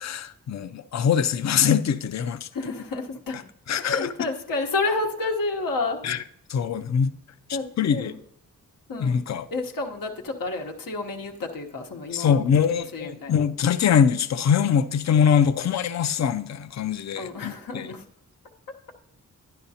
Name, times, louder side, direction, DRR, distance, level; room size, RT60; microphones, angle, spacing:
voice 1, 0.0-2.5 3.7-4.1 6.0-6.2 6.5-7.1 7.8-8.1 9.0-9.5 12.1-17.9, left 7 dB, 55° left, 0.4 m, -23 dB
voice 2, 2.5-3.4 3.8-6.0 7.5-8.2 8.9-9.2 9.5-13.4 17.2-18.0, left 3 dB, 90° left, 1.0 m, -30 dB
11.5 x 10.5 x 2.8 m
wide cardioid pair, 170°, 33 cm